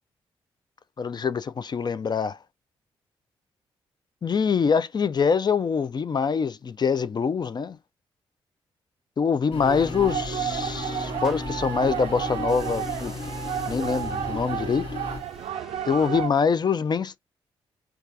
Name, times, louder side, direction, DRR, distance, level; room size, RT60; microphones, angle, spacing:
voice 1, 1.0-2.4 4.2-7.8 9.2-13.1 13.7-14.9 15.9-17.2, left 6 dB, 40° left, 0.4 m, -24 dB
sound 1, 9.5-15.2, left 3 dB, 55° left, 1.0 m, -35 dB
sound 2, 9.6-16.3, right 10 dB, 70° right, 0.4 m, -32 dB
sound 3, 9.9-11.7 12.4-16.4, right 2 dB, 5° right, 0.8 m, -49 dB
4.4 x 2.3 x 2.5 m
hypercardioid pair, 45°, 11 cm